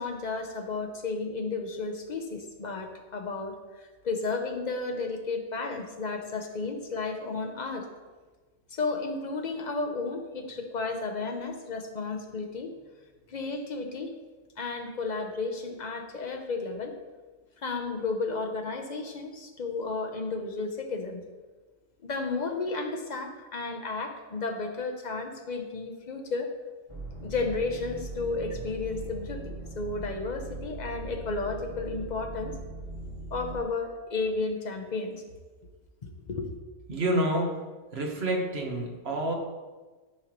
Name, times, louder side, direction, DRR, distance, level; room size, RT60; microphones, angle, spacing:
voice 1, 0.0-7.8 8.7-12.7 13.3-14.1 14.6-16.9 17.6-21.2 22.0-26.5 27.2-29.4 29.7-32.5 33.3-35.2 36.0-36.5, left 3 dB, 40° left, 4 dB, 0.9 m, -33 dB
sound 1, 26.9-33.6, right 2 dB, 25° right, 1.5 m, -40 dB
voice 2, 36.9-37.6 37.9-39.3, right 1 dB, 55° right, 1 dB, 1.4 m, -28 dB
13.0 x 5.5 x 3.1 m, 1.3 s
omnidirectional pair, 1.3 m